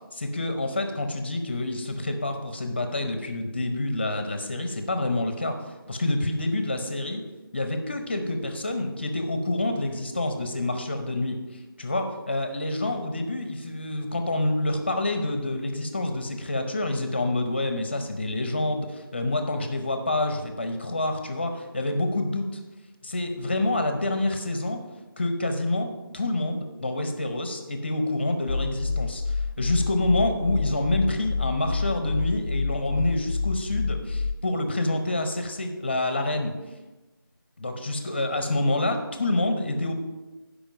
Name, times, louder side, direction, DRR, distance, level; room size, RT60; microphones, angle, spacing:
voice 1, 0.1-7.2 7.5-11.4 11.8-22.6 23.0-24.8 25.2-36.6 37.6-39.9, left 2 dB, 30° left, 6 dB, 0.8 m, -27 dB
sound 1, 28.5-34.4, left 4 dB, 85° left, 0.4 m, -28 dB
12.0 x 5.2 x 5.1 m, 1.1 s
figure-of-eight pair, 170°, 12 cm